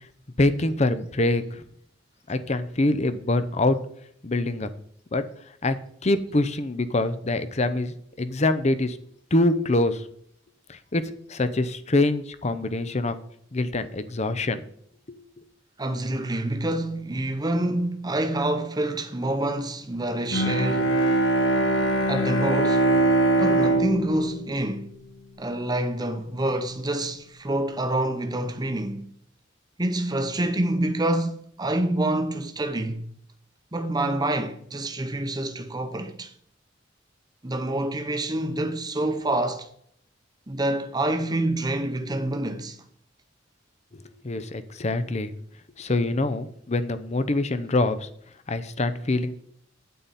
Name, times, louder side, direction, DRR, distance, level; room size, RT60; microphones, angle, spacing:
voice 1, 0.4-1.6 2.3-3.8 4.2-4.7 5.1-5.2 5.6-5.7 6.0-9.0 9.3-10.0 10.7-11.0 11.3-13.2 13.5-14.6 43.9-45.3 45.8-48.1 48.5-49.4, left 2 dB, 35° left, 0.7 m, -25 dB
voice 2, 15.8-21.0 22.1-22.9 23.4-24.9 25.4-29.1 29.8-33.0 33.7-36.3 37.4-39.7 40.5-42.8, right 1 dB, 20° right, 0.8 m, -27 dB
Bowed string instrument, 20.3-25.6, right 2 dB, 85° left, 2.0 m, -23 dB
9.3 x 8.3 x 4.2 m
head